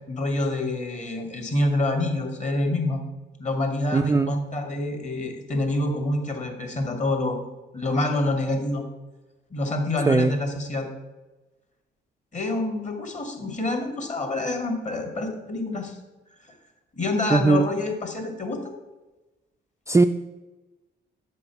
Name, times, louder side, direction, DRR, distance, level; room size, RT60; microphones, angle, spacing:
voice 1, 0.1-3.0 3.4-7.5 7.7-8.8 9.5-10.9 12.3-16.0 16.4-16.6 16.9-18.6, left 2 dB, 35° left, 3 dB, 2.1 m, -27 dB
voice 2, 3.9-4.3 10.1-10.3 17.3-17.7 19.9-20.1, right 3 dB, 15° right, 7 dB, 0.3 m, -19 dB
8.2 x 5.3 x 5.8 m, 1.1 s
cardioid pair, 90°, 20 cm